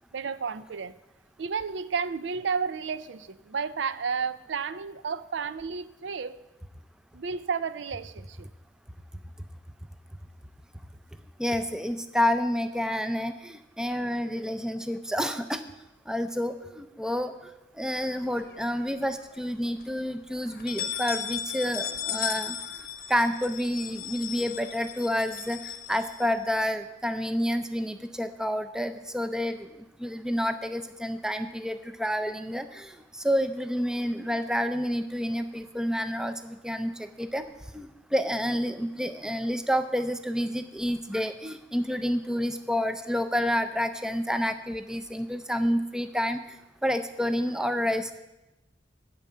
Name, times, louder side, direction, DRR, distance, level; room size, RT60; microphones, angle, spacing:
voice 1, 0.1-1.0 1.4-6.4 7.1-8.5, right 5 dB, 80° right, 15 dB, 0.5 m, -32 dB
voice 2, 11.4-15.6 16.1-17.3 17.8-22.6 23.1-25.6 25.9-29.7 30.0-32.9 33.2-36.9 37.2-37.5 37.7-46.4 46.8-48.1, equal, 5° right, 9 dB, 0.5 m, -29 dB
sound 1, 18.0-18.9 19.3-19.4 19.8-19.9 20.5-26.7, left 9 dB, 50° left, 0.8 m, -36 dB
9.0 x 6.8 x 8.3 m, 0.97 s
head